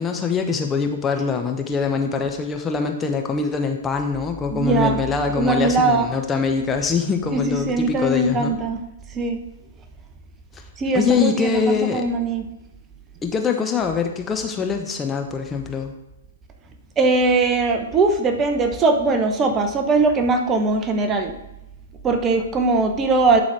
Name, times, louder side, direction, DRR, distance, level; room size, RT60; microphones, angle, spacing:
voice 1, 0.0-8.5 10.9-12.1 13.2-15.9, left 5 dB, 15° left, 4 dB, 0.9 m, -23 dB
voice 2, 4.5-5.0 5.3-6.1 7.3-8.8 9.1-9.4 10.8-12.5 17.0-21.3 22.0-23.4, right 3 dB, 20° right, 6 dB, 0.9 m, -20 dB
11.0 x 4.1 x 4.7 m, 0.92 s
figure-of-eight pair, 115°, 0 cm